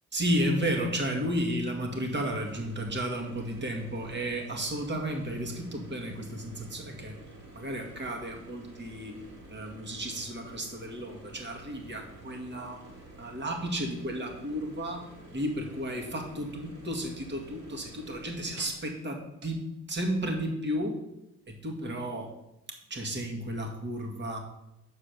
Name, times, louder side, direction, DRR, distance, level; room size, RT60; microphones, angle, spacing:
voice 1, 0.1-7.1 7.6-9.2 9.5-12.8 13.2-15.1 15.3-19.6 19.9-21.0 21.6-22.3 22.9-24.4, equal, 35° right, 2 dB, 2.0 m, -33 dB
sound 1, 2.3-18.9 19.4-19.5, right 1 dB, 65° right, 3.2 m, -50 dB
6.7 x 5.0 x 6.7 m, 0.87 s
cardioid pair, 90°, 30 cm